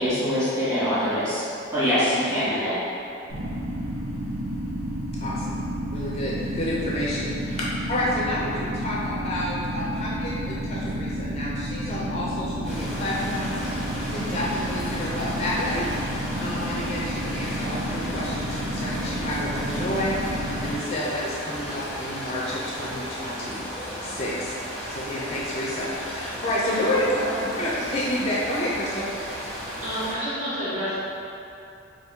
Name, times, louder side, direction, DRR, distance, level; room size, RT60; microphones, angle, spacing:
voice 1, 0.0-1.4 1.7-2.8, equal, 15° right, -13 dB, 1.4 m, -23 dB
sound 1, 3.3-20.8, equal, 50° right, 1.0 m, -31 dB
voice 2, 5.2-5.7 5.9-13.6 14.0-15.9 16.4-20.2 20.6-23.6 24.0-24.6 24.9-29.1, left 1 dB, 30° left, -6 dB, 0.4 m, -29 dB
sound 2, 12.6-30.1, equal, ahead, 0.7 m, -35 dB
voice 3, 29.8-31.0, equal, 35° right, -11 dB, 1.3 m, -30 dB
3.5 x 2.6 x 4.3 m, 2.7 s
head